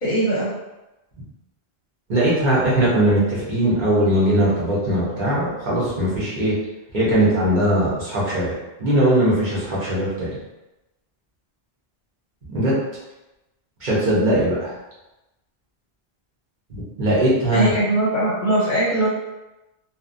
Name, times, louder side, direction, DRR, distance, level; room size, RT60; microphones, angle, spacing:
voice 1, 0.0-0.5 17.5-19.1, right 1 dB, 55° left, -6 dB, 0.7 m, -20 dB
voice 2, 2.1-6.5 6.9-10.3 12.5-12.7 13.8-14.7 16.7-17.7, right 1 dB, 50° right, -8 dB, 1.0 m, -20 dB
2.8 x 2.1 x 2.5 m, 1.0 s
omnidirectional pair, 1.1 m